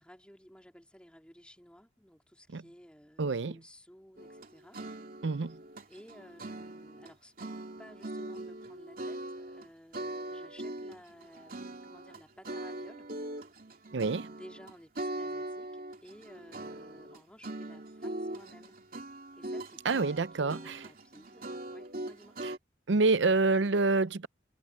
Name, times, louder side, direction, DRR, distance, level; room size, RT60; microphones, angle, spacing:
voice 1, 0.0-4.8 5.9-13.1 14.3-18.8 19.1-22.4, equal, 5° left, 3.7 m, -55 dB
voice 2, 3.2-3.5 5.2-5.5 13.9-14.3 19.9-20.8 22.9-24.3, right 3 dB, 75° right, 0.6 m, -27 dB
sound 1, 4.2-7.1 7.4-9.7 9.9-22.6, right 1 dB, 50° right, 3.0 m, -41 dB
head